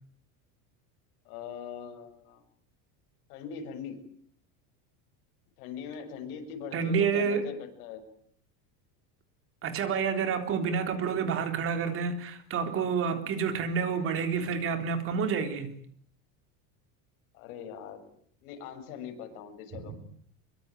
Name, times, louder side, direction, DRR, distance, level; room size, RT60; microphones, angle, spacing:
voice 1, 1.2-2.4 3.3-4.0 5.6-8.0 17.3-18.1 18.4-19.9, left 7 dB, 80° left, 7.6 m, -41 dB
voice 2, 6.7-7.5 9.6-15.7 19.7-19.8, right 6 dB, 30° right, 3.7 m, -29 dB
24.5 x 23.5 x 9.3 m
cardioid pair, 175°, 43 cm